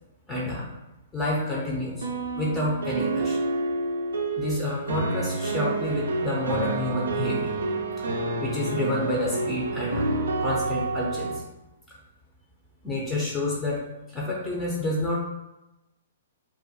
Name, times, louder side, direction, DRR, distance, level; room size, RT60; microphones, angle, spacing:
voice 1, 0.3-0.7 1.1-2.1 2.4-3.4 4.4-7.6 8.0-8.1 8.4-10.1 10.4-11.4 12.8-13.8 14.1-15.2, left 1 dB, 15° left, -5 dB, 0.5 m, -28 dB
sound 1, 1.3-11.4, right 3 dB, 70° right, 0.3 m, -29 dB
2.3 x 2.1 x 2.7 m, 0.96 s
figure-of-eight pair, 115°, 0 cm